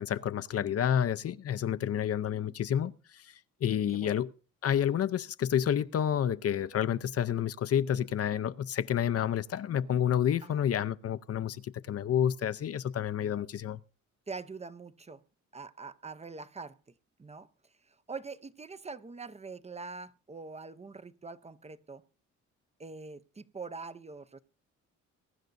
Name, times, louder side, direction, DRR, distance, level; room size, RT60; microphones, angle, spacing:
voice 1, 0.0-2.9 3.6-4.3 4.6-13.8, left 9 dB, 50° left, 0.7 m, -29 dB
voice 2, 3.9-4.2 10.4-10.6 14.3-15.2 15.5-16.8 17.2-17.5 17.9-22.0 22.8-24.4, right 4 dB, 20° right, 0.7 m, -44 dB
22.5 x 10.5 x 2.6 m
cardioid pair, 90°, 30 cm